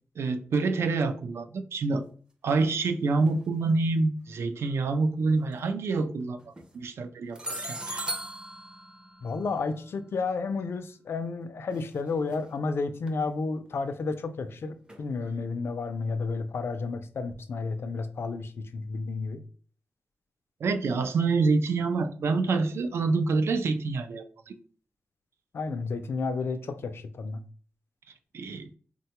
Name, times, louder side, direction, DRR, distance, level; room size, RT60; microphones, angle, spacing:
voice 1, 0.2-2.0 2.4-6.4 6.7-8.1 20.6-24.5 28.3-28.7, right 3 dB, 85° right, 0.3 m, -27 dB
sound 1, 3.3-3.4 5.4-5.6 6.4-6.8 7.3-10.3 11.7-12.0 12.3-12.4 13.1-13.2 14.9-15.1, right 1 dB, 20° right, 0.5 m, -38 dB
voice 2, 9.2-19.4 25.5-27.4, left 4 dB, 70° left, 0.3 m, -31 dB
3.5 x 2.2 x 2.9 m
wide cardioid pair, 115°, 4 cm